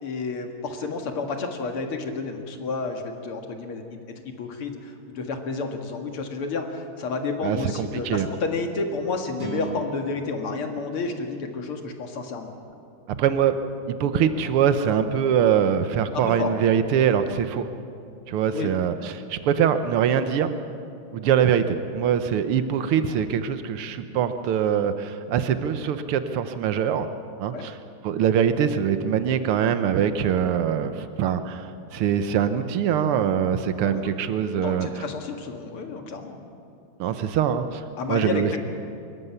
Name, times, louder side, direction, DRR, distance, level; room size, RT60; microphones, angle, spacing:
voice 1, 0.0-4.0 4.4-12.5 16.2-16.5 18.5-18.7 27.5-27.6 33.8-34.3 34.6-36.4 38.0-38.6, left 4 dB, 85° left, 4 dB, 2.8 m, -30 dB
voice 2, 7.4-8.3 13.2-13.5 13.9-17.7 18.3-20.6 21.1-27.1 27.4-27.8 28.0-35.0 37.0-38.6, right 8 dB, 90° right, 10 dB, 1.8 m, -23 dB
sound 1, 9.4-12.7, right 3 dB, 60° right, 3.6 m, -39 dB
24.5 x 13.5 x 9.6 m, 2.6 s
omnidirectional pair, 2.4 m